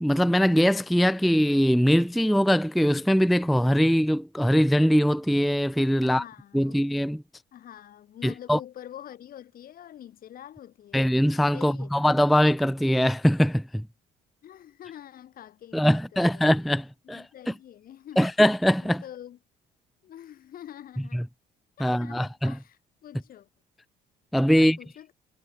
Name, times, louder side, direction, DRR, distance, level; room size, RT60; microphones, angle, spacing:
voice 1, 0.0-6.2 6.5-7.2 8.2-8.6 10.9-13.9 15.7-17.5 18.2-19.0 21.1-21.2 21.8-22.6 24.3-24.8, equal, ahead, 0.4 m, -22 dB
voice 2, 6.0-6.8 7.5-11.0 11.5-11.9 14.4-16.5 17.0-18.3 18.8-19.4 20.0-21.2 21.8-23.5 24.5-25.1, left 11 dB, 60° left, 5.8 m, -46 dB
cardioid pair, 110°, 17 cm